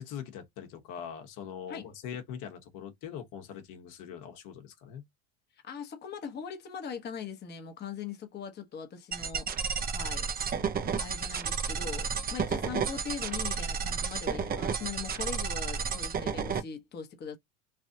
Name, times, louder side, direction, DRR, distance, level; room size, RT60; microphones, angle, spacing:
voice 1, 0.0-5.0 12.1-12.4, left 8 dB, 55° left, 1.1 m, -42 dB
voice 2, 5.6-9.5 9.9-10.3 11.0-17.4, left 7 dB, 25° left, 0.9 m, -41 dB
sound 1, 9.1-16.6, right 6 dB, 25° right, 0.6 m, -32 dB
3.3 x 2.4 x 2.7 m
supercardioid pair, 115°, 39 cm